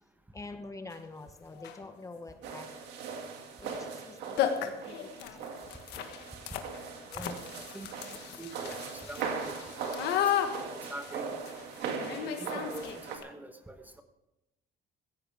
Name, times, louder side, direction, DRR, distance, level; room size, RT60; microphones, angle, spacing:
voice 1, 0.3-3.0 3.6-4.4 4.8-5.6, left 3 dB, 20° left, 7 dB, 1.0 m, -46 dB
sound 1, 0.9-1.0 1.6-1.9 3.6-3.8 4.0-4.1 4.4-13.2, left 10 dB, 85° left, 1.5 m, -35 dB
sound 2, 2.4-13.2, right 5 dB, 85° right, 2.2 m, -40 dB
voice 2, 7.1-7.4 7.7-10.2 10.9-11.3 12.2-14.0, right 1 dB, 10° right, 8 dB, 1.2 m, -45 dB
15.5 x 15.5 x 3.6 m, 0.95 s
cardioid pair, 110°, 17 cm